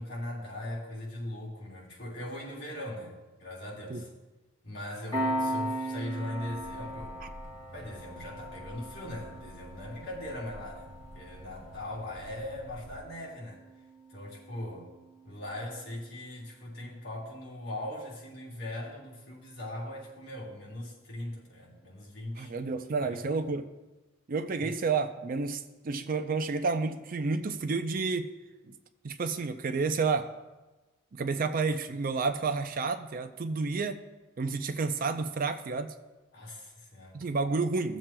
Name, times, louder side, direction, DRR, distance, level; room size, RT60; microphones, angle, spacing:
voice 1, 0.0-4.1 4.6-7.2 7.7-10.9 11.1-13.6 14.1-14.9 15.2-23.2 24.6-24.7 36.3-37.2, left 1 dB, 55° left, -4 dB, 2.9 m, -40 dB
Piano, 5.1-16.2, equal, 20° left, 2.3 m, -39 dB
sound 1, 6.4-13.0, equal, 70° right, 2.1 m, -50 dB
voice 2, 22.4-23.7 24.3-28.3 28.7-28.8 29.0-30.3 31.1-34.0 34.4-35.9 37.1-38.0, right 4 dB, 40° right, 9 dB, 0.4 m, -30 dB
17.5 x 7.3 x 2.2 m, 1.1 s
head